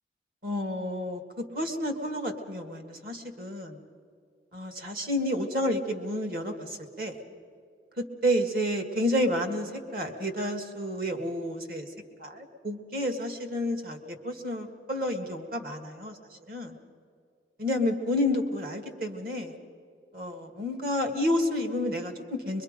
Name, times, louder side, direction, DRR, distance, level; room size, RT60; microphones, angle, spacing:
voice 1, 0.4-3.8 4.5-7.2 8.0-11.9 12.2-16.8 17.6-19.6 20.1-22.6, left 1 dB, 50° right, 5 dB, 1.8 m, -30 dB
23.5 x 23.0 x 5.2 m, 2.4 s
head